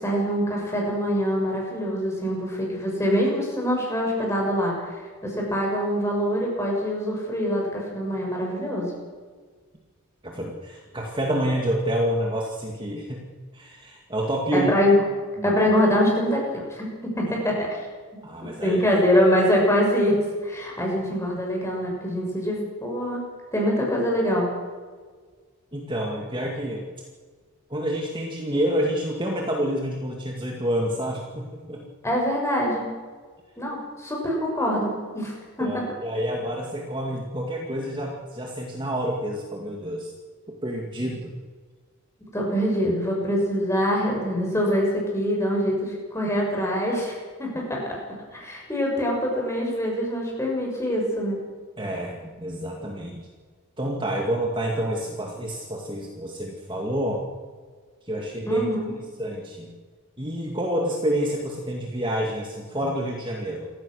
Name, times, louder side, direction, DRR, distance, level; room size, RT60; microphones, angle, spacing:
voice 1, 0.0-8.9 14.5-15.0 15.4-17.8 18.4-23.2 23.5-24.5 32.0-32.9 33.6-35.9 42.3-48.0 48.3-51.4 58.5-58.9, equal, 15° left, -1 dB, 6.7 m, -24 dB
voice 2, 10.2-13.2 13.5-14.7 15.4-15.5 18.2-18.8 25.7-26.9 27.7-31.8 35.6-40.1 40.6-41.3 51.8-53.3 53.8-57.2 58.1-58.7 59.2-59.7 60.2-63.7, equal, 20° right, 0 dB, 2.3 m, -28 dB
28.0 x 15.0 x 6.6 m, 1.5 s
head